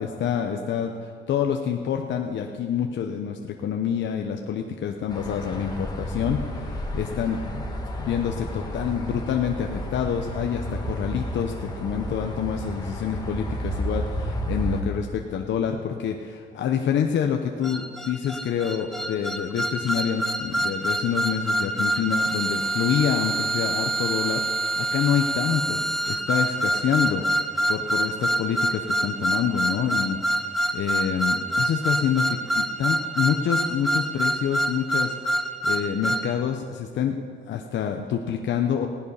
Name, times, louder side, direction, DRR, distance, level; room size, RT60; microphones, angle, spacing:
voice 1, 0.0-7.6 8.0-37.2 37.5-38.9, left 8 dB, 70° left, 3 dB, 0.9 m, -27 dB
sound 1, 5.1-14.8, equal, 20° left, 2.1 m, -32 dB
sound 2, 17.6-36.3, right 1 dB, ahead, 0.8 m, -26 dB
16.5 x 11.0 x 5.7 m, 2.1 s
cardioid pair, 90°, 20 cm